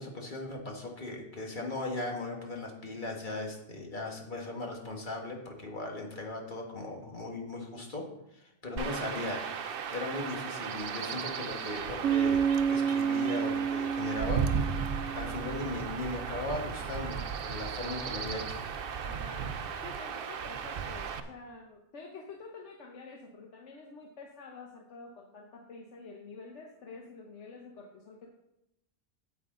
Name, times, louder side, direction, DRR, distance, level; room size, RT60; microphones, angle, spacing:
voice 1, 0.0-9.4 9.9-14.8 15.1-18.6, left 2 dB, 40° left, 1 dB, 1.6 m, -38 dB
Chirp tweet / Wind / Stream, 8.8-21.2, right 6 dB, 55° right, 0.8 m, -36 dB
Bass guitar, 12.0-15.9, right 7 dB, 80° right, 1.0 m, -30 dB
voice 2, 19.0-19.5 19.8-28.3, left 4 dB, 70° left, 1 dB, 1.2 m, -48 dB
9.4 x 8.3 x 3.7 m, 0.86 s
omnidirectional pair, 1.2 m